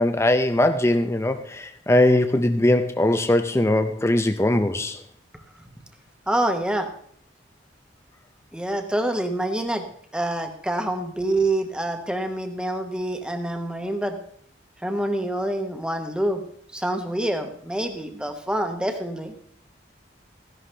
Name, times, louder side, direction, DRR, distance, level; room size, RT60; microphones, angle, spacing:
voice 1, 0.0-5.0, left 1 dB, 15° left, 7 dB, 0.6 m, -20 dB
voice 2, 6.3-6.9 8.5-9.8 10.1-14.2 14.8-16.4 16.7-19.3, right 1 dB, 5° right, 5 dB, 1.1 m, -26 dB
15.0 x 11.0 x 3.3 m, 0.62 s
head